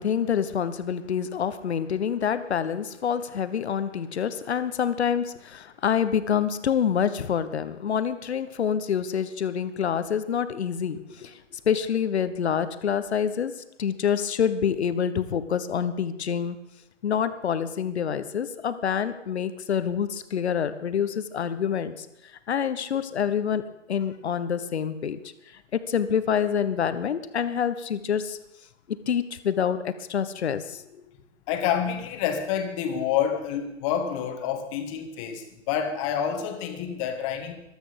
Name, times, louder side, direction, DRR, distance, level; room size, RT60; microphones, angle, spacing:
voice 1, 0.0-13.5 13.8-16.6 17.0-22.1 22.5-23.6 23.9-25.2 25.7-28.4 28.9-31.0, left 8 dB, 60° left, 12 dB, 1.3 m, -27 dB
voice 2, 31.5-37.6, left 8 dB, 25° left, 6 dB, 1.7 m, -28 dB
15.5 x 12.5 x 5.2 m, 0.91 s
figure-of-eight pair, 140°, 38 cm